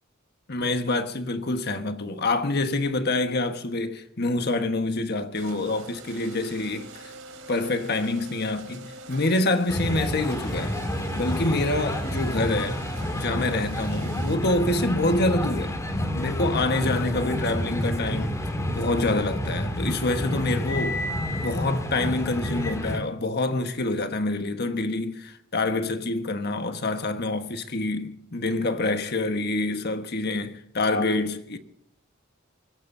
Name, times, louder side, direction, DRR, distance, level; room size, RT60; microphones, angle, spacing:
voice 1, 0.5-7.1 7.5-10.7 11.1-12.8 13.1-15.7 16.1-18.4 18.7-21.0 21.3-31.6, left 2 dB, 50° left, 1.4 m, -26 dB
sound 1, 5.3-14.3, right 3 dB, 75° right, 3.9 m, -44 dB
sound 2, 9.7-23.0, equal, 15° left, 2.5 m, -29 dB
24.5 x 17.0 x 2.7 m
head